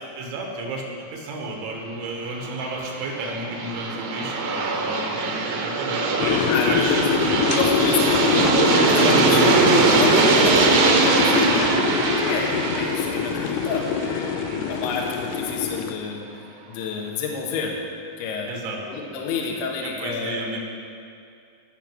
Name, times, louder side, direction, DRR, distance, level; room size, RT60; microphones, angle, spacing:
voice 1, 0.0-7.6 11.2-11.8 14.5-14.8 18.5-18.8 19.8-20.6, right 2 dB, 85° right, 0 dB, 4.3 m, -32 dB
Aircraft, 2.4-15.2, right 4 dB, 65° right, 2.3 m, -22 dB
sound 1, 6.2-15.9, left 8 dB, 90° left, 2.3 m, -24 dB
voice 2, 6.5-7.0 7.5-11.7 12.0-14.4 14.7-16.3 16.7-17.8 18.2-20.6, left 5 dB, 70° left, 0 dB, 3.2 m, -29 dB
17.0 x 6.7 x 7.5 m, 2.4 s
omnidirectional pair, 5.3 m